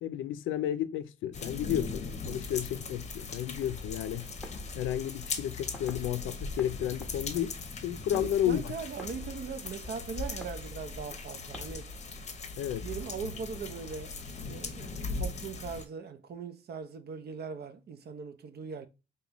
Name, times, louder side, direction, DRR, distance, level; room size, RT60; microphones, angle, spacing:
voice 1, 0.0-4.3 4.7-7.6 7.8-8.7 12.6-12.9, left 11 dB, 80° left, 0.5 m, -32 dB
sound 1, 1.3-15.8, left 4 dB, 35° left, 0.8 m, -40 dB
sound 2, 3.6-12.7, left 1 dB, ahead, 1.0 m, -46 dB
voice 2, 8.1-11.9 12.8-18.9, right 6 dB, 55° right, 0.7 m, -40 dB
5.1 x 2.3 x 2.9 m
cardioid pair, 90°, 20 cm